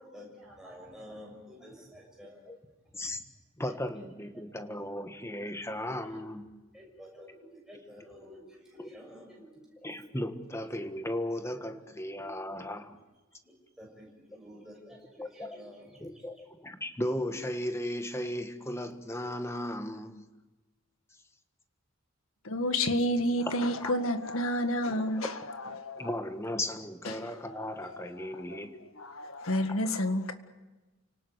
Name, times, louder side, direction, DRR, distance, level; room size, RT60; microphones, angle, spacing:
voice 1, 0.0-2.5 2.8-3.2 3.7-4.0 4.3-5.4 5.8-6.3 6.7-9.8 11.7-12.7 13.4-16.5, equal, 5° right, 6.7 m, -51 dB
voice 2, 3.6-6.5 8.8-8.9 9.8-13.0 15.2-15.6 16.0-20.2 23.8-23.9 26.0-28.8, left 1 dB, 15° left, 1.5 m, -36 dB
voice 3, 22.4-26.1 27.0-30.3, left 1 dB, 85° left, 1.9 m, -31 dB
29.5 x 18.5 x 8.1 m
head